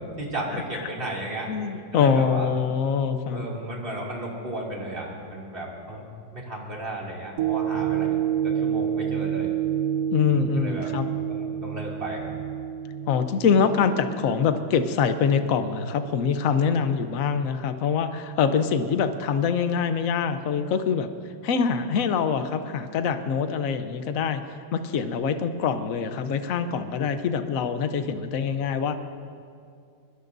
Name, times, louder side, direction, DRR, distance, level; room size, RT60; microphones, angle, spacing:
voice 1, 0.2-1.5 1.9-2.5 3.3-6.1 6.3-8.1 8.4-9.5 10.2-10.9 11.3-12.3, right 1 dB, 25° right, -4 dB, 2.9 m, -34 dB
voice 2, 1.5-3.4 10.1-11.1 13.1-21.1 21.4-24.4 24.7-28.9, left 6 dB, 55° left, 9 dB, 1.0 m, -24 dB
sound 1, 7.4-15.8 16.3-16.4, right 10 dB, 85° right, 0.7 m, -29 dB
24.5 x 21.5 x 2.7 m, 2.4 s
omnidirectional pair, 2.3 m